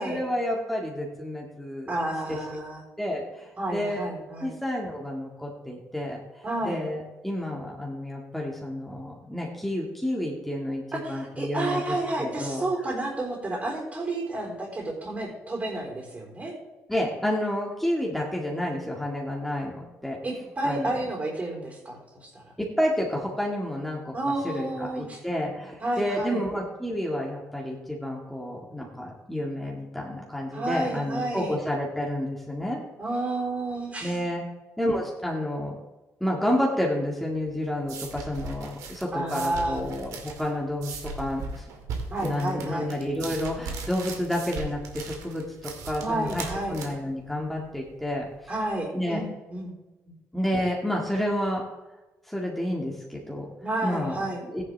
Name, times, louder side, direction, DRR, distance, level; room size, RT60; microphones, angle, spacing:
voice 1, 0.0-1.9 2.3-2.6 3.0-4.1 4.4-10.8 11.1-12.6 16.9-20.2 20.6-20.9 22.6-24.1 24.4-32.8 34.0-34.4 34.8-35.8 36.2-41.7 42.2-46.4 46.7-48.3 48.9-49.2 50.3-51.6 52.3-53.5 53.8-54.6, left 1 dB, 5° left, -2 dB, 2.0 m, -30 dB
voice 2, 1.9-2.8 3.6-4.6 6.4-6.8 10.9-16.6 20.2-22.4 24.1-25.2 25.8-26.5 30.5-31.6 33.0-34.2 39.1-39.8 42.1-42.9 46.0-46.8 48.5-49.7 53.6-54.4, right 2 dB, 30° right, -1 dB, 4.0 m, -31 dB
sound 1, 37.3-48.7, right 4 dB, 90° right, 2.2 m, -39 dB
14.5 x 10.5 x 3.5 m, 1.1 s
cardioid pair, 100°, 6 cm